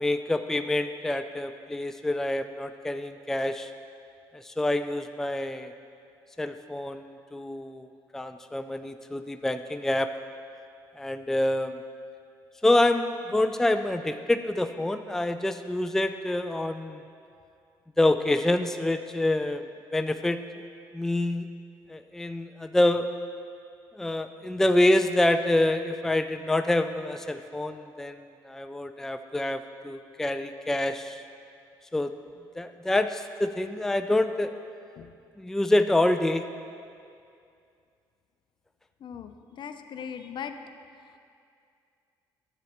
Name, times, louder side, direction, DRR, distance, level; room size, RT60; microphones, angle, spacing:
voice 1, 0.0-3.7 4.3-5.7 6.4-10.1 11.0-11.8 12.6-17.0 18.0-19.7 19.9-20.4 20.9-21.5 21.9-23.1 23.9-28.2 28.4-31.2 31.9-32.1 32.6-34.5 35.4-36.5, left 1 dB, 5° left, 8 dB, 0.4 m, -26 dB
voice 2, 39.0-40.6 41.0-41.2, left 7 dB, 55° left, 8 dB, 0.5 m, -39 dB
11.0 x 8.4 x 3.0 m, 2.4 s
supercardioid pair, 70°, 10 cm